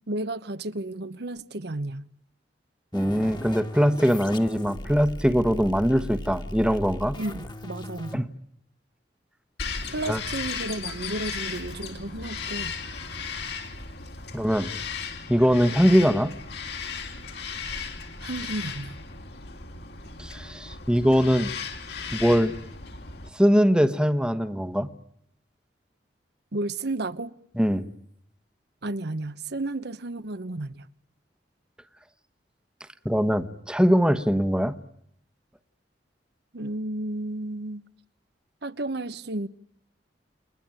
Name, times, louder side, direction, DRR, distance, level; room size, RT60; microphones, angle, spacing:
voice 1, 0.1-2.1 7.2-8.3 9.9-12.7 18.2-19.0 26.5-27.4 28.8-30.9 36.5-37.9 38.6-39.5, right 2 dB, 65° right, 1.0 m, -32 dB
sound 1, 2.9-8.2, left 1 dB, 25° left, 1.8 m, -38 dB
voice 2, 2.9-7.2 8.1-8.3 10.1-10.2 14.3-14.7 15.3-16.3 20.2-21.5 22.1-22.5 23.3-24.9 27.6-27.8 33.0-34.8, equal, 5° right, 1.2 m, -22 dB
Bird vocalization bird call bird song, 9.6-23.3, left 5 dB, 65° left, 3.4 m, -36 dB
29.5 x 22.0 x 9.0 m
head